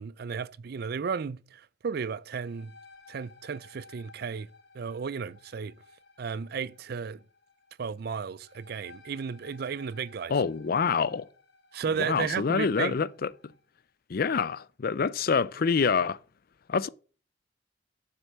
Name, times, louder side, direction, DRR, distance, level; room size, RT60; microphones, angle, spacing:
voice 1, 0.0-2.7 3.1-4.5 4.7-5.8 6.2-7.2 7.8-10.3 11.7-13.0, right 6 dB, 60° right, 0.4 m, -34 dB
sound 1, 2.2-13.7, left 4 dB, 75° left, 3.3 m, -57 dB
voice 2, 10.3-11.3 12.0-13.3 14.1-16.2 16.7-16.9, left 5 dB, 55° left, 0.5 m, -26 dB
7.3 x 6.7 x 7.6 m
head